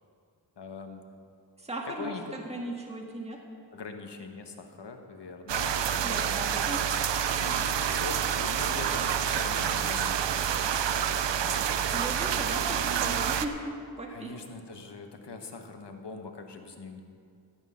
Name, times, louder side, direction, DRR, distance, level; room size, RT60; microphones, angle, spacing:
voice 1, 0.6-1.0 1.9-2.3 3.7-6.7 7.4-10.7 11.1-11.8 14.1-17.0, left 4 dB, 75° left, 5 dB, 1.3 m, -42 dB
voice 2, 1.6-3.4 6.0-6.8 11.9-14.3, right 1 dB, 15° right, -1 dB, 1.7 m, -37 dB
sound 1, 5.5-13.5, right 8 dB, 85° right, 0.7 m, -28 dB
15.5 x 8.9 x 5.7 m, 2.4 s
wide cardioid pair, 60°, 42 cm